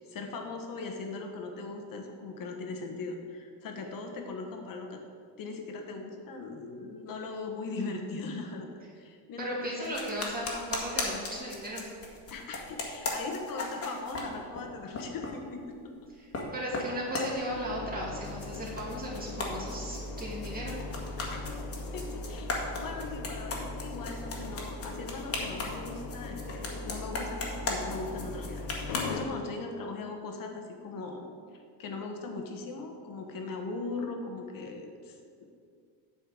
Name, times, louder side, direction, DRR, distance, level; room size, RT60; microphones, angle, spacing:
voice 1, 0.1-5.0 5.4-8.7 8.9-9.9 12.3-15.8 21.2-21.4 21.9-31.3 31.8-35.4, left 3 dB, 45° left, 3 dB, 1.5 m, -39 dB
voice 2, 9.4-11.8 16.2-16.3 16.5-20.7, equal, 20° right, -5 dB, 2.5 m, -36 dB
sound 1, 9.8-14.7 14.9-15.4 16.0-16.5 16.7-18.0 18.2-29.1, left 3 dB, 30° left, 1.8 m, -37 dB
sound 2, 17.5-29.2, left 2 dB, 75° left, 1.0 m, -39 dB
8.4 x 4.5 x 7.3 m, 2.2 s
supercardioid pair, 110°, 46 cm